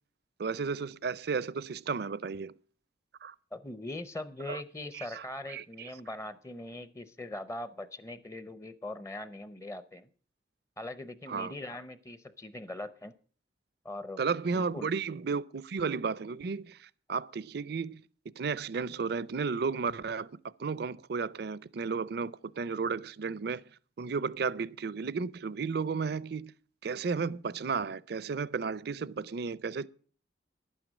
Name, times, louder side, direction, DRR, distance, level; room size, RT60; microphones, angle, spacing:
voice 1, 0.4-2.6 3.2-3.3 4.5-4.6 4.9-5.9 11.3-11.5 14.2-18.0 18.4-20.3 20.6-23.6 24.0-26.5 26.8-29.9, right 5 dB, 55° right, 0.5 m, -33 dB
voice 2, 3.5-10.1 10.8-13.1 13.8-14.2 14.5-14.9, left 2 dB, 15° left, 0.6 m, -41 dB
11.5 x 9.1 x 6.2 m
head